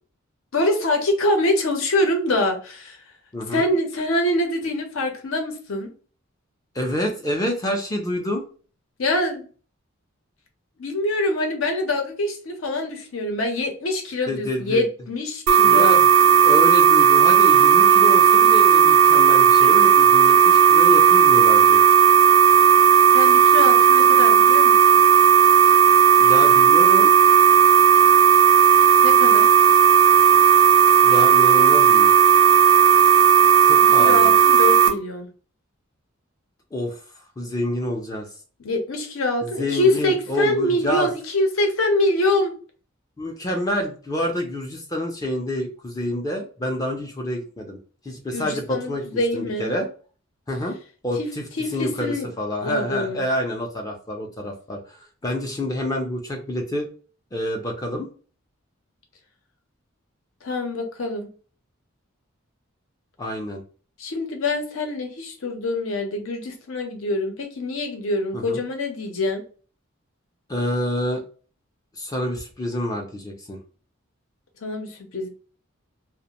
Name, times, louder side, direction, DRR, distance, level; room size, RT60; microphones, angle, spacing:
voice 1, 0.5-3.0 3.5-5.9 9.0-9.5 10.8-16.0 23.1-24.7 29.0-29.5 34.0-35.3 38.6-42.5 48.3-49.7 51.2-51.3 51.6-52.3 52.6-53.2 60.4-61.3 64.0-69.4 74.6-75.3, left 1 dB, 75° left, 4 dB, 0.7 m, -24 dB
voice 2, 3.3-3.7 6.7-8.4 14.3-14.8 15.6-21.8 26.2-27.1 31.0-32.1 33.6-34.3 36.7-38.3 39.4-41.1 43.2-47.8 48.0-49.9 50.5-50.8 51.0-51.4 51.7-56.9 57.3-58.1 63.2-63.6 68.3-68.6 70.5-71.2 71.9-73.6, left 1 dB, 15° left, 1 dB, 0.4 m, -27 dB
sound 1, 15.5-34.9, right 8 dB, 85° right, 0.6 m, -14 dB
2.4 x 2.0 x 2.8 m, 0.39 s
head